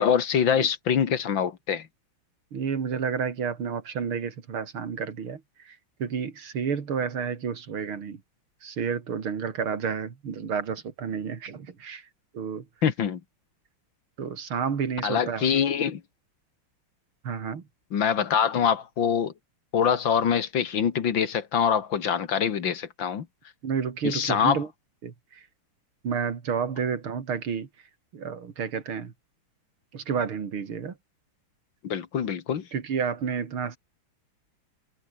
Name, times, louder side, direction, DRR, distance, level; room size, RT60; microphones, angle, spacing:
voice 1, 0.0-1.9 12.8-13.2 15.0-16.0 17.9-19.3 19.7-23.3 24.0-24.6 31.8-32.7, left 7 dB, 65° left, 2.3 m, -24 dB
voice 2, 2.5-8.2 8.6-12.1 12.3-12.7 14.2-15.5 17.2-17.6 23.6-24.7 25.0-25.4 26.0-27.7 28.1-29.1 29.9-31.0 32.7-33.8, right 6 dB, 85° right, 3.3 m, -30 dB
omnidirectional pair, 2.3 m